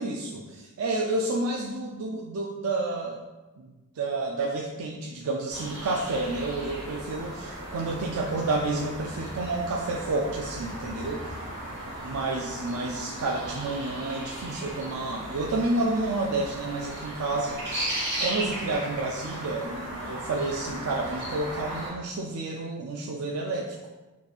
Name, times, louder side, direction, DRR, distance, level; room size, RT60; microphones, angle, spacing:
voice 1, 0.0-3.2 3.6-11.3 11.7-11.8 12.0-17.9 18.2-23.9, right 2 dB, 80° right, 0 dB, 0.4 m, -30 dB
sound 1, 5.5-21.9, right 1 dB, 50° right, 1.5 m, -36 dB
5.2 x 3.0 x 2.4 m, 1.2 s
head